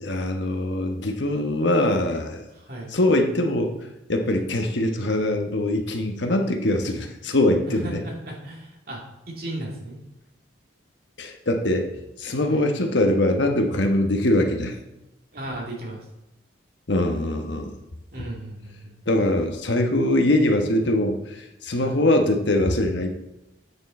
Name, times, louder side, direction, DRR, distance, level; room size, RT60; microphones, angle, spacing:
voice 1, 0.0-2.4 2.9-3.7 4.1-8.0 11.2-11.9 12.2-14.8 16.9-17.7 18.2-18.3 19.1-23.2, left 1 dB, 75° left, 4 dB, 1.1 m, -22 dB
voice 2, 2.5-3.0 7.7-10.0 12.5-12.7 15.3-16.0 18.1-19.0 21.8-22.0, right 1 dB, 50° right, -2 dB, 2.5 m, -36 dB
8.9 x 6.7 x 4.2 m, 0.92 s
head